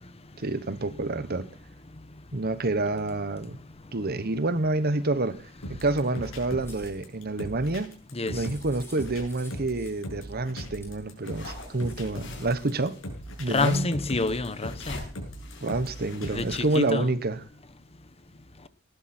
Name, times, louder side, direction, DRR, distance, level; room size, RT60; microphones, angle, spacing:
voice 1, 0.4-1.5 2.3-3.6 3.9-5.4 5.7-7.9 8.3-13.0 13.4-13.9 15.6-17.4, right 2 dB, 50° right, 1.1 m, -28 dB
sound 1, 5.6-16.8, equal, 85° left, 7.4 m, -39 dB
sound 2, 6.3-7.0 7.6-10.1 10.8-10.9 11.5-13.1 13.6-13.7 14.2-14.7, left 2 dB, 10° left, 5.8 m, -54 dB
sound 3, 11.2-16.9, left 3 dB, 60° left, 7.5 m, -44 dB
voice 2, 13.5-15.0 16.3-17.1, left 3 dB, 30° left, 1.0 m, -27 dB
19.5 x 12.5 x 4.4 m
head